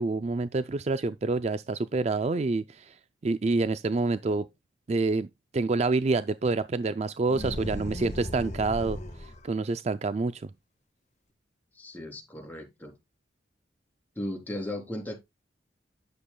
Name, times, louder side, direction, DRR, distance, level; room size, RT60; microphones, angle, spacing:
voice 1, 0.0-3.0 3.2-4.5 4.9-5.3 5.5-10.5, right 3 dB, 35° right, 0.4 m, -27 dB
sound 1, 7.3-9.5, left 1 dB, 40° left, 1.4 m, -36 dB
voice 2, 11.7-13.0 14.2-15.2, left 1 dB, 10° left, 3.5 m, -36 dB
11.5 x 7.1 x 2.2 m
head